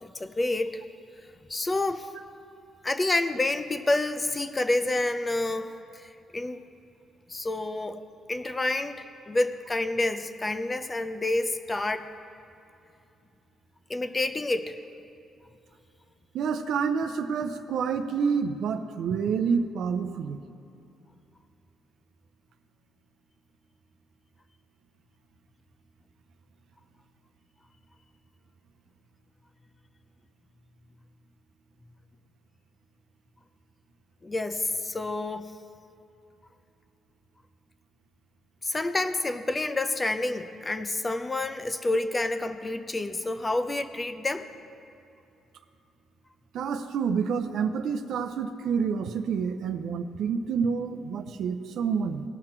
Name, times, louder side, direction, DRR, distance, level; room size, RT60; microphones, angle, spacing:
voice 1, 0.0-0.8 1.5-2.1 2.8-6.6 7.3-8.0 8.3-12.1 13.9-14.8 34.2-35.5 38.6-44.5, left 2 dB, 25° left, 9 dB, 0.6 m, -28 dB
voice 2, 16.3-20.4 46.5-52.2, right 6 dB, 75° right, 7 dB, 0.6 m, -28 dB
17.5 x 5.9 x 4.5 m, 2.7 s
cardioid pair, 90°, 0 cm